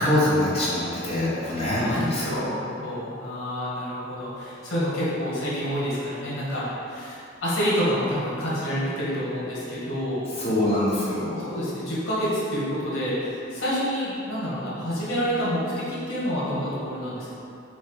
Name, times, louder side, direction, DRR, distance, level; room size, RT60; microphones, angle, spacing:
voice 1, 0.0-2.5 10.4-11.5, left 1 dB, 30° left, -9 dB, 1.0 m, -24 dB
voice 2, 1.6-10.2 10.5-10.8 11.5-17.4, equal, 90° left, -8 dB, 1.3 m, -28 dB
4.7 x 2.1 x 4.4 m, 2.7 s
head